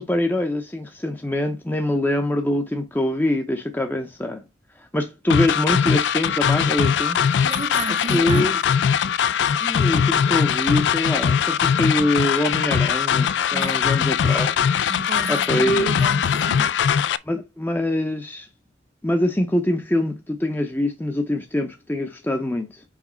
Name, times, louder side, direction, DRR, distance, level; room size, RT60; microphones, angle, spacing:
voice 1, 0.0-4.4 4.8-7.2 8.1-8.6 9.6-14.6 15.3-16.0 17.3-18.5 19.0-22.8, left 1 dB, 10° left, 0.6 m, -24 dB
sound 1, 5.3-17.2, left 7 dB, 75° left, 0.3 m, -21 dB
voice 2, 7.4-8.5 13.5-13.8 14.9-16.8, right 4 dB, 35° right, 0.6 m, -33 dB
4.9 x 4.0 x 5.5 m
head